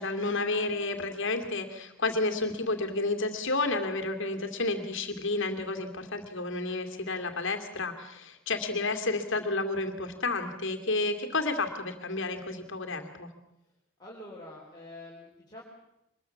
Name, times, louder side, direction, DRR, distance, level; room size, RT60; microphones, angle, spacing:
voice 1, 0.0-13.3, left 3 dB, 55° left, 6 dB, 2.4 m, -31 dB
voice 2, 14.0-15.6, left 1 dB, 20° left, -4 dB, 3.8 m, -46 dB
24.0 x 21.0 x 7.1 m, 0.83 s
head